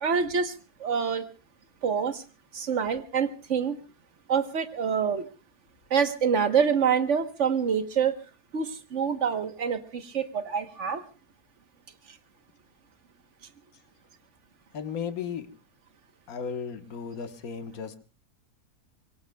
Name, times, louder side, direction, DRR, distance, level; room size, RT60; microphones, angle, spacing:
voice 1, 0.0-0.5 0.8-1.3 1.8-2.2 2.5-3.8 4.3-5.3 5.9-8.2 8.5-11.0, right 6 dB, 50° right, 9 dB, 1.4 m, -26 dB
voice 2, 14.7-15.5 16.3-18.0, left 7 dB, 65° left, 7 dB, 1.7 m, -35 dB
24.0 x 23.0 x 2.3 m, 0.34 s
omnidirectional pair, 1.7 m